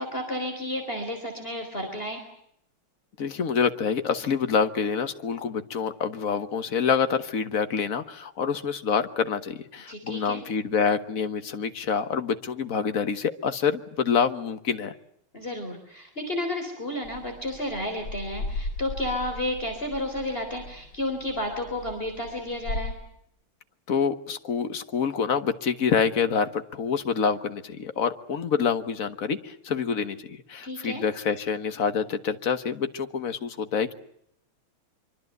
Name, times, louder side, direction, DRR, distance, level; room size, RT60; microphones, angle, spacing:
voice 1, 0.0-2.2 9.9-10.4 15.3-22.9 30.6-31.0, left 1 dB, 25° left, 4 dB, 4.0 m, -32 dB
voice 2, 3.2-14.9 23.9-33.9, left 6 dB, 45° left, 9 dB, 1.5 m, -27 dB
sound 1, 17.0-22.9, left 2 dB, 75° left, 6.7 m, -37 dB
25.0 x 24.5 x 8.0 m, 0.74 s
omnidirectional pair, 2.3 m